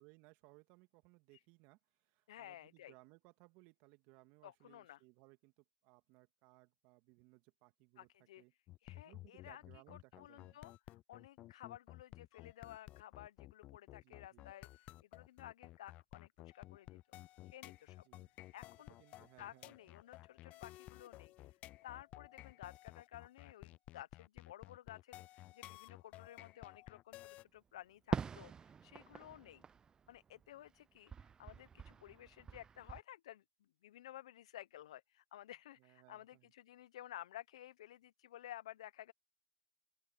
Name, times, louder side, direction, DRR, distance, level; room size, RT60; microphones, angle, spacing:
voice 1, 0.0-8.1 8.4-8.5 8.9-10.6 14.0-14.5 18.0-18.3 18.9-19.9 35.8-36.5, right 25 dB, 55° right, 2.3 m, -65 dB
voice 2, 2.3-2.9 4.4-5.0 8.0-8.4 8.8-9.6 9.9-17.0 17.4-18.0 18.5-18.9 19.4-29.6 30.1-33.4 33.8-39.1, left 13 dB, 75° left, 0.9 m, -54 dB
Mediso Vate, 8.7-27.4, left 16 dB, 45° left, 0.4 m, -55 dB
Fireworks, 28.1-30.7 31.1-33.0, right 6 dB, 25° right, 0.6 m, -44 dB
open air
hypercardioid pair, 90°, 3 cm